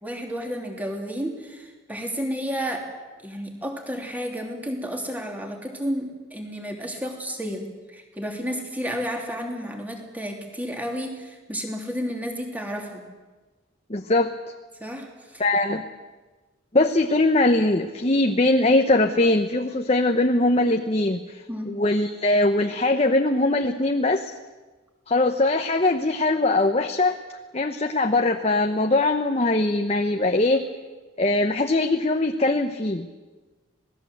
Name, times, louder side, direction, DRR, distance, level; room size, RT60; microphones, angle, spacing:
voice 1, 0.0-2.9 3.2-13.0 14.8-15.4 21.5-21.7, equal, 10° right, 2 dB, 3.1 m, -31 dB
voice 2, 13.9-14.3 15.4-15.8 16.7-24.3 25.1-27.2 27.5-30.6 31.2-33.1, left 2 dB, 30° left, 5 dB, 1.0 m, -21 dB
27.0 x 19.0 x 7.9 m, 1.3 s
head